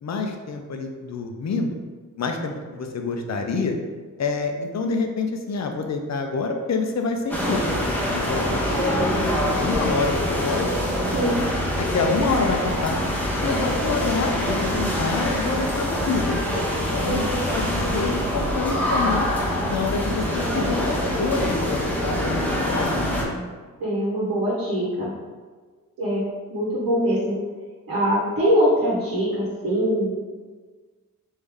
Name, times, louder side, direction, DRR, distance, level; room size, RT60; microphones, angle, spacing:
voice 1, 0.0-1.8 2.2-3.8 4.2-10.7 11.8-13.0 13.4-16.4 16.7-17.2 17.5-19.3 19.7-23.4, left 4 dB, 55° left, 4 dB, 0.5 m, -27 dB
sound 1, 7.3-23.3, equal, 5° left, 0.6 m, -24 dB
voice 2, 17.0-17.4 23.8-25.1 26.0-27.3 27.9-30.2, equal, 85° right, -7 dB, 1.0 m, -23 dB
3.3 x 2.7 x 3.5 m, 1.4 s
wide cardioid pair, 105°, 34 cm